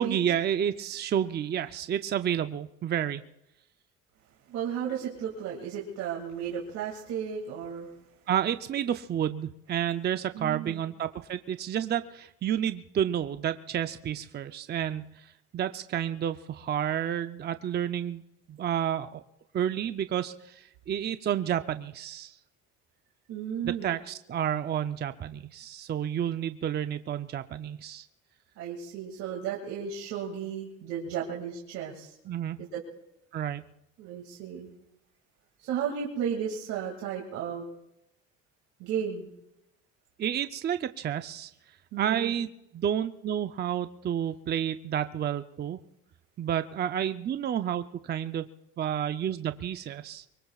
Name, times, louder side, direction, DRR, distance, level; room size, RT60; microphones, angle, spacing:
voice 1, 0.0-3.2 8.3-18.2 18.5-19.2 19.5-22.4 23.6-28.1 32.3-32.6 33.3-33.6 40.2-41.5 42.0-42.5 42.7-45.8 46.4-48.5 48.8-50.3, right 9 dB, 35° right, 9 dB, 0.6 m, -30 dB
voice 2, 4.5-7.9 10.3-10.8 23.3-23.9 28.6-32.1 32.6-32.8 34.0-34.7 35.6-37.7 38.8-39.3 41.9-42.3, right 8 dB, 75° right, -2 dB, 2.5 m, -34 dB
24.5 x 23.5 x 2.4 m, 0.85 s
cardioid pair, 120°, 29 cm